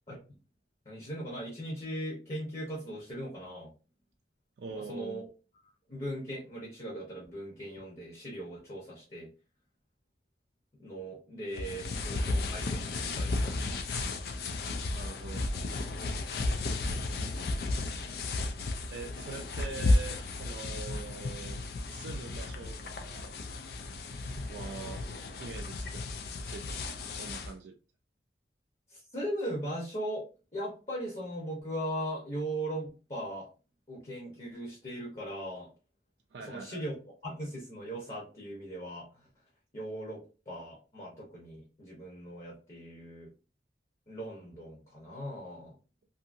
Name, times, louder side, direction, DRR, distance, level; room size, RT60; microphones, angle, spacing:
voice 1, 0.9-3.7 4.7-5.2 5.9-9.3 10.8-13.9 16.6-17.0 28.9-30.3 30.5-33.5 33.9-35.7 36.5-36.9 37.2-39.1 39.7-40.2 40.5-43.3 44.1-45.7, right 1 dB, 35° left, -4 dB, 0.9 m, -39 dB
voice 2, 4.6-5.3 14.9-15.6 16.5-16.9 18.9-21.6 21.9-23.3 24.5-25.0 25.4-26.1 26.4-27.7 36.3-36.8, right 4 dB, 75° right, 3 dB, 0.4 m, -44 dB
sound 1, 11.5-27.5, left 2 dB, 55° left, 0.4 m, -33 dB
2.7 x 2.6 x 2.5 m, 0.34 s
head